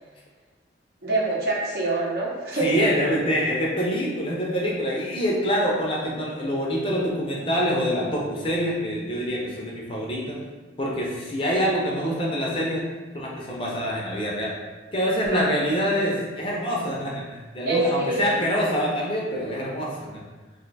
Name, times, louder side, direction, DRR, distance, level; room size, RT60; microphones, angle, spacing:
voice 1, 1.0-3.0 15.3-15.4 17.7-18.4, right 2 dB, 55° right, -4 dB, 0.7 m, -25 dB
voice 2, 2.6-10.4 10.8-12.8 13.1-14.5 14.9-20.2, equal, 30° left, -3 dB, 0.5 m, -25 dB
2.6 x 2.2 x 3.9 m, 1.3 s
head